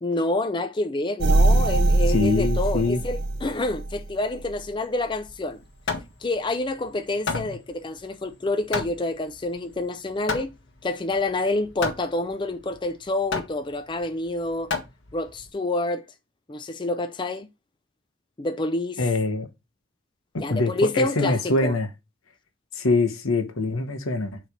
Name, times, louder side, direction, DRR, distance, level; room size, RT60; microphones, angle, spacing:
voice 1, 0.0-5.6 6.2-10.5 10.8-14.7 15.1-16.0 16.5-17.5 18.4-19.0 20.4-21.8, left 2 dB, 25° left, 0.4 m, -28 dB
sound 1, 1.2-4.1 4.5-4.6, right 2 dB, 55° right, 0.6 m, -22 dB
voice 2, 2.1-3.0 7.3-7.4 19.0-19.5 20.3-21.9 22.7-24.4, left 3 dB, 85° left, 1.2 m, -24 dB
Hammer, 5.3-15.5, left 4 dB, 60° left, 1.6 m, -33 dB
7.6 x 3.3 x 4.9 m
head